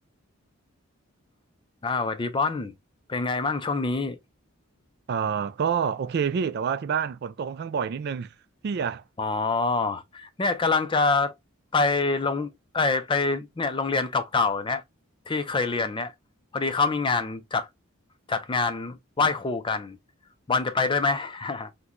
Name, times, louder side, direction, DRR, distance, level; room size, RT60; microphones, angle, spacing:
voice 1, 1.8-2.7 3.1-4.2 9.2-11.3 11.7-14.8 15.3-16.1 16.5-17.7 18.3-20.0 20.5-21.7, left 4 dB, 25° left, 0.4 m, -25 dB
voice 2, 5.1-8.3 8.6-9.0, right 7 dB, 50° right, 0.3 m, -27 dB
3.8 x 2.2 x 2.9 m
head